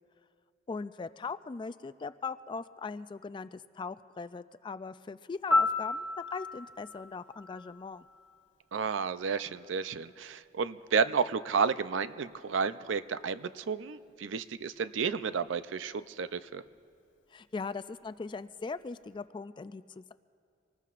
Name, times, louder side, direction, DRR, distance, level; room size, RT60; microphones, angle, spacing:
voice 1, 0.7-6.1 6.3-8.0 17.3-20.1, left 4 dB, 25° left, 13 dB, 0.3 m, -40 dB
Piano, 5.5-8.4 16.6-16.8, left 3 dB, 75° left, 1.0 m, -32 dB
voice 2, 8.7-16.6, right 5 dB, 80° right, 13 dB, 0.5 m, -31 dB
26.0 x 19.5 x 2.5 m, 2.4 s
head